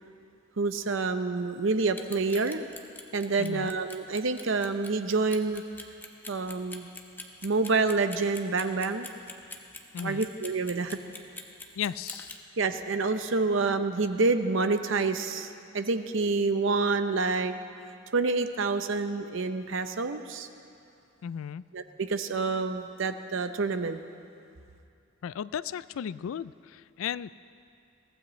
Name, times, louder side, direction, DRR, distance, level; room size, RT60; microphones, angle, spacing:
voice 1, 0.6-2.6 3.1-5.6 6.3-6.9 7.4-9.1 10.0-11.0 12.6-17.5 18.1-20.5 21.7-24.0, right 3 dB, 70° right, 9 dB, 0.7 m, -28 dB
Clock, 1.9-12.4, left 2 dB, 10° left, 0.9 m, -43 dB
voice 2, 3.4-3.7 9.9-10.3 11.8-12.3 21.2-21.6 25.2-27.3, left 8 dB, 80° left, 18 dB, 0.3 m, -35 dB
22.5 x 16.0 x 3.2 m, 2.5 s
head